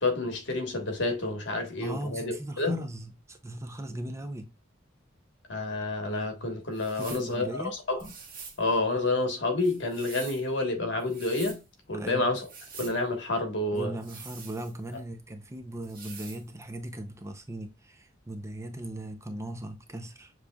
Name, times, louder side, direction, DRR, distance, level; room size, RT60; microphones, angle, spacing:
voice 1, 0.0-2.8 5.5-8.1 8.6-11.6 11.9-12.4 12.8-14.0, left 2 dB, 65° left, 1.4 m, -29 dB
voice 2, 1.8-4.5 6.9-7.8 11.9-12.3 13.7-20.3, right 1 dB, 15° right, 0.6 m, -38 dB
sound 1, 6.7-7.3 8.0-8.6 9.6-10.5 11.0-11.6 12.4-13.0 14.0-15.0 15.8-16.4, right 5 dB, 50° right, 1.5 m, -46 dB
7.0 x 3.2 x 2.3 m
head